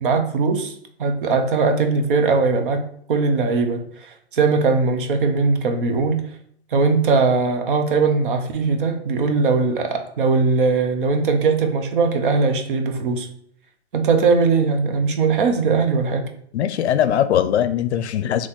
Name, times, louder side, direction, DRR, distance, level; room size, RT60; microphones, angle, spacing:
voice 1, 0.0-6.2 6.7-13.3 13.9-16.3, right 4 dB, 50° right, 6 dB, 0.7 m, -20 dB
voice 2, 16.5-18.5, left 10 dB, 75° left, 12 dB, 0.5 m, -20 dB
3.7 x 3.0 x 4.2 m, 0.64 s
hypercardioid pair, 170°, 34 cm